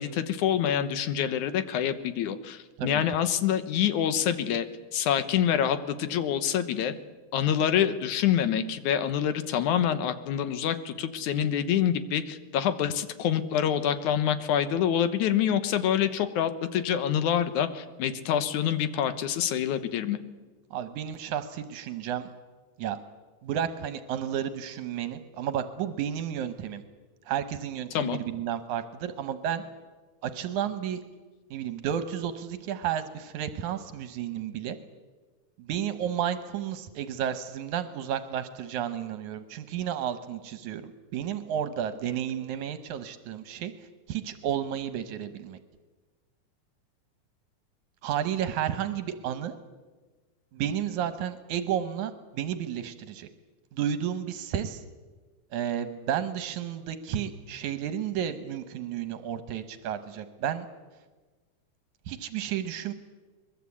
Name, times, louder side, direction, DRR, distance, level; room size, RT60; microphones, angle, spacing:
voice 1, 0.0-4.7 4.9-6.9 7.3-20.2 27.9-28.2, left 9 dB, 80° left, 11 dB, 2.6 m, -26 dB
voice 2, 20.7-22.3 22.8-23.0 23.4-26.8 27.3-29.6 30.2-31.0 31.5-34.8 35.6-43.7 44.1-45.6 48.0-49.6 50.5-53.3 53.7-54.8 55.5-60.7 62.1-62.9, right 9 dB, 80° right, 10 dB, 2.5 m, -32 dB
21.5 x 21.5 x 8.5 m, 1.3 s
omnidirectional pair, 3.4 m